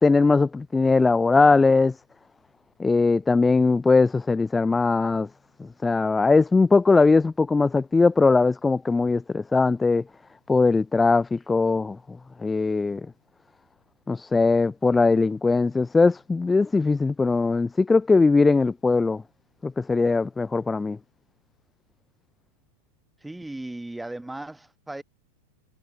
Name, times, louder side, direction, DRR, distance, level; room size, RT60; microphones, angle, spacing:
voice 1, 0.0-2.0 2.8-5.3 5.6-10.0 10.5-12.0 12.4-13.1 14.1-19.2 19.6-21.0, left 3 dB, 10° left, 0.5 m, -20 dB
voice 2, 23.2-25.0, right 2 dB, 5° right, 1.3 m, -36 dB
figure-of-eight pair, 90°, 0 cm